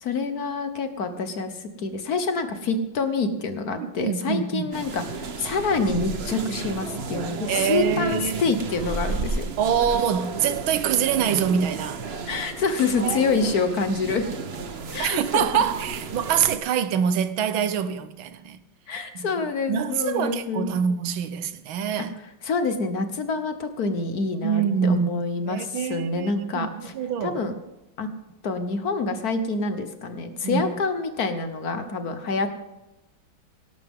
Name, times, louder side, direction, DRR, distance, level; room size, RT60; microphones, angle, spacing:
voice 1, 0.0-9.5 12.3-14.3 14.9-15.5 18.9-20.7 22.4-26.9 27.2-27.5 28.0-28.1 28.4-32.5, left 4 dB, 55° left, 1.4 m, -27 dB
voice 2, 3.8-4.7 7.5-8.4 9.6-12.0 13.0-13.3 15.0-18.6 19.1-19.3 19.7-22.1 24.4-25.1 25.4-27.4 30.4-30.6, right 8 dB, 80° right, 1.6 m, -25 dB
sound 1, 4.7-16.6, right 4 dB, 45° right, 0.9 m, -33 dB
17.5 x 12.5 x 3.7 m
omnidirectional pair, 2.2 m